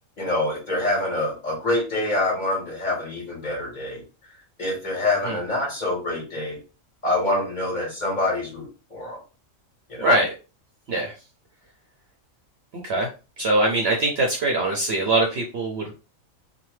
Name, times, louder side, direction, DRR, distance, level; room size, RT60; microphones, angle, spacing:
voice 1, 0.2-4.0 4.6-6.6 7.0-9.2 9.9-10.2, left 2 dB, 35° left, -3 dB, 1.5 m, -26 dB
voice 2, 10.0-10.3 10.9-11.1 12.8-13.1 13.4-15.9, right 2 dB, 60° right, 1 dB, 0.7 m, -22 dB
2.9 x 2.2 x 3.1 m, 0.33 s
omnidirectional pair, 1.4 m